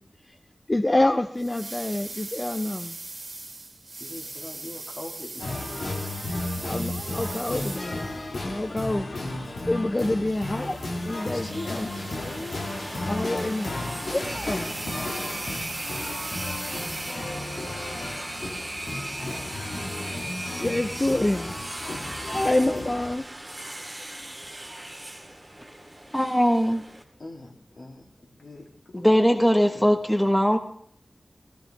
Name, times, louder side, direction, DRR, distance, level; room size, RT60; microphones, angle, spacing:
voice 1, 0.7-3.0 6.6-8.1 8.4-10.8 11.0-11.9 13.0-13.7 14.1-14.8 20.6-21.5 22.3-23.3, left 1 dB, 30° left, 0.6 m, -27 dB
sound 1, 1.4-8.4 10.3-17.5, right 3 dB, 65° right, 2.3 m, -40 dB
voice 2, 4.0-6.1 11.3-12.7 27.2-28.0 28.3-29.8, left 2 dB, 70° left, 2.8 m, -42 dB
sound 2, 5.4-23.1, left 2 dB, 85° left, 1.8 m, -34 dB
sound 3, 11.1-27.0, right 1 dB, 15° right, 2.0 m, -38 dB
voice 3, 26.1-26.8 28.9-30.6, equal, 5° left, 1.2 m, -20 dB
15.5 x 15.0 x 3.4 m
wide cardioid pair, 55°, 0 cm